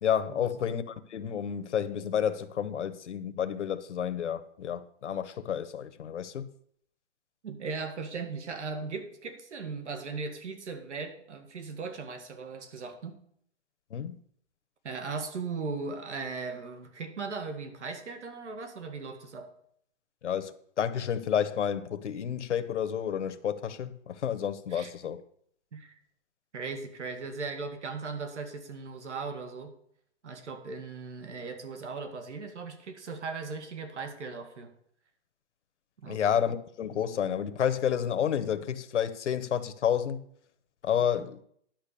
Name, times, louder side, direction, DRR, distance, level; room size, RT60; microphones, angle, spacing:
voice 1, 0.0-6.5 13.9-14.1 20.2-25.2 36.1-40.2 40.8-41.4, left 8 dB, 85° left, 1.0 m, -30 dB
voice 2, 7.4-13.2 14.8-19.5 24.7-24.9 25.7-25.9 26.5-29.7 30.2-34.7 36.0-36.2 41.2-41.3, right 4 dB, 80° right, 2.0 m, -38 dB
10.5 x 5.7 x 6.8 m
hypercardioid pair, 170°, 35 cm